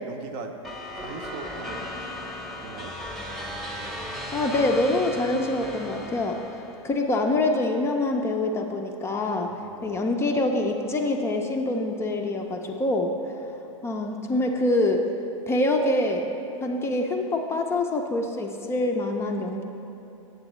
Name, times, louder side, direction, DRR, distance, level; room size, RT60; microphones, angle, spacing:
voice 1, 0.1-0.6 1.0-1.9 2.1-2.2 2.6-3.0 9.6-10.0, right 5 dB, 45° right, 6 dB, 0.6 m, -40 dB
sound 1, 0.6-6.9, left 1 dB, ahead, 0.8 m, -36 dB
voice 2, 4.0-6.4 6.8-9.5 9.8-13.1 13.8-15.0 15.5-16.3 16.6-19.6, left 2 dB, 15° left, 3 dB, 0.4 m, -25 dB
7.8 x 7.7 x 3.0 m, 2.8 s
figure-of-eight pair, 100°, 17 cm